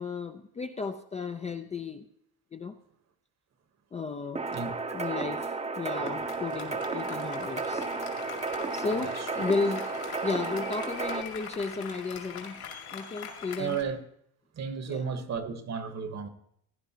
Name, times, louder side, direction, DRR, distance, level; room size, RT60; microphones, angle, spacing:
voice 1, 0.0-2.1 2.5-2.7 3.9-4.4 4.9-7.9 8.7-9.8 10.2-12.6 12.9-13.8 14.9-15.1, left 4 dB, 20° left, 0.4 m, -34 dB
sound 1, 4.4-11.2, right 4 dB, 15° right, 0.7 m, -33 dB
Applause, 6.0-13.8, left 6 dB, 65° left, 2.4 m, -43 dB
voice 2, 13.6-14.0 14.6-16.3, right 6 dB, 45° right, 1.1 m, -33 dB
17.0 x 10.0 x 2.8 m
cardioid pair, 115°, 39 cm